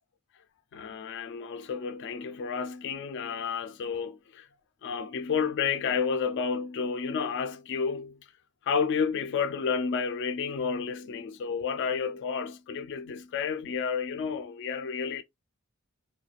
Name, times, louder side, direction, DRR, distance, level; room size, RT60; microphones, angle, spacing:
voice 1, 0.7-4.5 4.8-8.2 8.7-15.2, left 6 dB, 55° left, 0.3 m, -31 dB
2.4 x 2.2 x 2.9 m
head